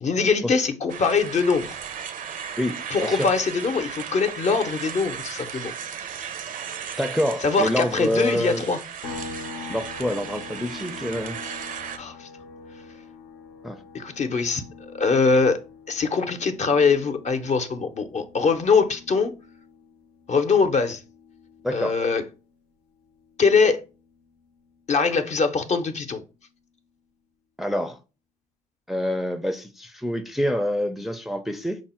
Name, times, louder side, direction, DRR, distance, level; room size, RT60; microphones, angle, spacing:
voice 1, 0.0-1.8 2.9-5.7 7.4-8.8 12.0-12.3 13.9-15.6 15.9-19.3 20.3-21.0 21.7-22.2 23.4-23.8 24.9-26.2, left 4 dB, 45° left, 0.6 m, -22 dB
sound 1, 0.9-12.0, right 7 dB, 60° right, 0.5 m, -36 dB
voice 2, 2.6-3.3 7.0-8.6 9.7-11.5 13.6-13.8 21.6-22.0 27.6-28.0 28.9-31.8, equal, ahead, 0.4 m, -27 dB
sound 2, 9.0-22.6 22.9-25.1, left 4 dB, 90° left, 0.7 m, -44 dB
4.7 x 2.0 x 4.2 m
supercardioid pair, 65°, 16 cm